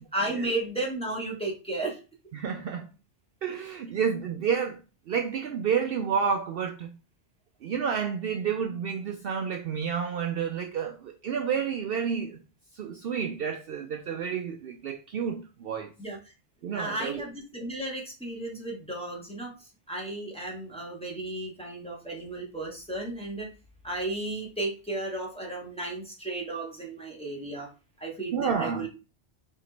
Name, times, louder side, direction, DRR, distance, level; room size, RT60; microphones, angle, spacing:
voice 1, 0.1-2.0 16.0-16.2 16.7-23.5 23.8-27.7 28.0-28.9, right 2 dB, 5° left, 1.1 m, -34 dB
voice 2, 2.3-2.9 3.4-4.8 5.1-6.9 7.6-12.4 12.8-15.9 16.6-17.2 28.3-28.9, right 7 dB, 65° right, 0.7 m, -30 dB
4.4 x 2.8 x 3.9 m
omnidirectional pair, 1.2 m